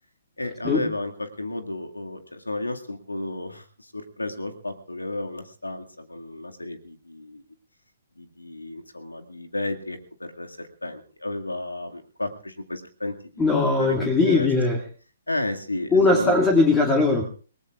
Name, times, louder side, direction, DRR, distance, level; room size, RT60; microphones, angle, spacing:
voice 1, 0.4-7.4 8.2-14.5 15.3-16.3, left 2 dB, 80° left, 6 dB, 2.1 m, -33 dB
voice 2, 13.4-14.8 15.9-17.2, left 3 dB, 10° left, 2 dB, 2.3 m, -19 dB
29.0 x 19.0 x 2.4 m, 0.39 s
figure-of-eight pair, 130°, 0 cm